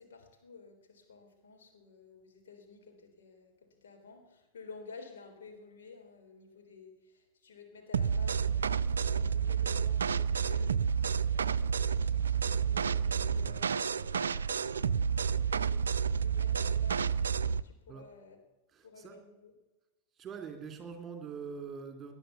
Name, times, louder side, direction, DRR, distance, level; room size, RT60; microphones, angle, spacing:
voice 1, 0.0-18.4 18.8-19.5, left 4 dB, 65° left, 3 dB, 3.7 m, -53 dB
sound 1, 7.9-17.6, right 7 dB, 70° right, 0.4 m, -30 dB
voice 2, 18.7-19.3 20.1-22.1, right 6 dB, 25° right, 5 dB, 3.1 m, -43 dB
19.5 x 10.5 x 6.8 m, 1.1 s
figure-of-eight pair, 90°, 0 cm